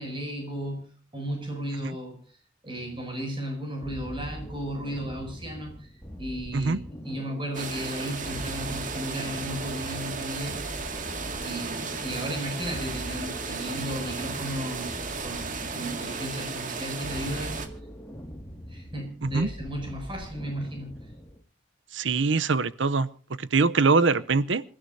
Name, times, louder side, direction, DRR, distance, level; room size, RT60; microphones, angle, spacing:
voice 1, 0.0-2.2 2.6-5.9 6.2-10.7 11.4-17.6 18.7-20.9, equal, 25° right, 7.3 m, -35 dB
sound 1, 3.8-21.4, equal, 15° left, 2.1 m, -42 dB
sound 2, 7.5-17.7, right 4 dB, 45° right, 2.1 m, -35 dB
voice 2, 21.9-23.1 23.4-24.6, right 4 dB, 75° right, 0.7 m, -23 dB
27.5 x 14.5 x 2.7 m
head